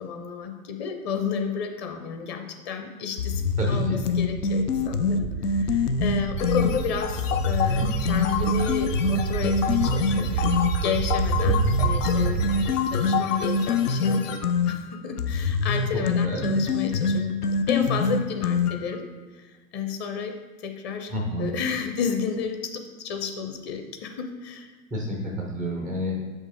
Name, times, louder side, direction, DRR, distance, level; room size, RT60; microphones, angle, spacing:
voice 1, 0.0-12.5 12.9-19.1 19.3-21.1 21.4-24.7, left 7 dB, 25° left, 5 dB, 0.7 m, -31 dB
sound 1, 3.2-6.7 7.2-10.7 11.2-19.0, left 4 dB, 90° left, 0.5 m, -25 dB
voice 2, 3.6-4.0 15.9-16.5 21.1-21.5 24.9-26.2, equal, ahead, -1 dB, 0.3 m, -29 dB
sound 2, 3.9-12.7, right 8 dB, 55° right, 0.5 m, -29 dB
sound 3, 6.4-14.4, left 8 dB, 60° left, 0.8 m, -31 dB
6.3 x 5.4 x 3.6 m, 1.3 s
figure-of-eight pair, 100°, 44 cm